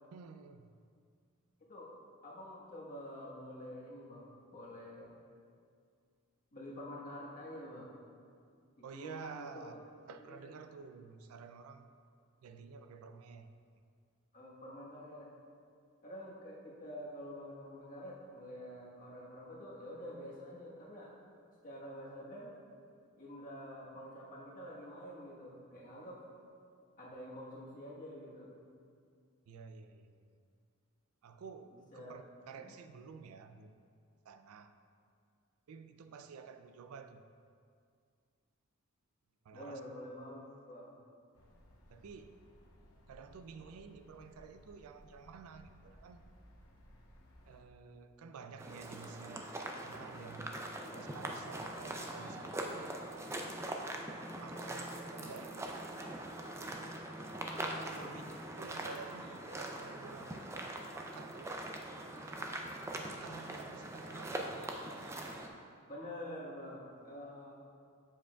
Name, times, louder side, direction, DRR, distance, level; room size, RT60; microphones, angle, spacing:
voice 1, 0.1-0.7 8.8-9.7 10.1-11.9 12.4-13.5 29.5-30.4 31.2-33.8 34.2-34.7 35.7-37.2 39.5-39.8 41.9-42.3 43.1-46.3 47.5-49.5 49.8-50.6 50.9-53.0 54.4-55.9 57.7-58.2 58.6-61.6 62.9-64.6, right 5 dB, 90° right, 9 dB, 0.4 m, -51 dB
voice 2, 1.6-1.9 2.2-5.2 6.5-8.0 8.9-9.7 10.2-10.8 14.3-15.3 16.0-21.1 21.6-22.5 23.2-26.2 27.0-28.5 31.7-32.2 32.5-32.7 39.5-41.0 50.8-51.0 58.0-58.2 65.9-67.5, equal, 40° left, -5 dB, 1.2 m, -48 dB
sound 1, 41.3-47.6, equal, 85° left, 0.8 m, -60 dB
sound 2, 48.6-65.5, right 1 dB, 15° right, 0.4 m, -42 dB
7.4 x 6.9 x 2.3 m, 2.2 s
head